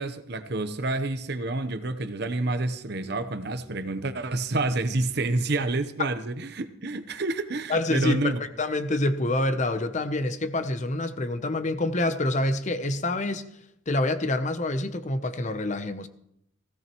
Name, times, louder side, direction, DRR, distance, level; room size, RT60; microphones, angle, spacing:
voice 1, 0.0-8.4, right 2 dB, 50° right, 11 dB, 0.8 m, -28 dB
voice 2, 7.7-13.4 13.9-16.1, left 2 dB, 35° left, 10 dB, 0.7 m, -27 dB
17.0 x 16.0 x 3.0 m, 0.75 s
head